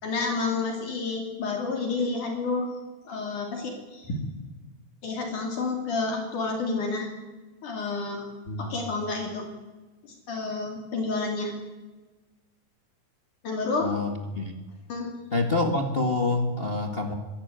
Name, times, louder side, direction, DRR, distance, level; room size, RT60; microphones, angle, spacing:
voice 1, 0.0-2.7 3.1-4.2 5.0-7.1 7.6-8.3 8.6-9.5 10.3-11.6 13.4-13.9 14.9-15.1, left 3 dB, 60° left, 2 dB, 4.5 m, -29 dB
voice 2, 13.8-14.5 15.3-17.1, left 2 dB, 30° left, 5 dB, 1.1 m, -27 dB
25.0 x 13.0 x 9.4 m, 1.2 s
omnidirectional pair, 4.0 m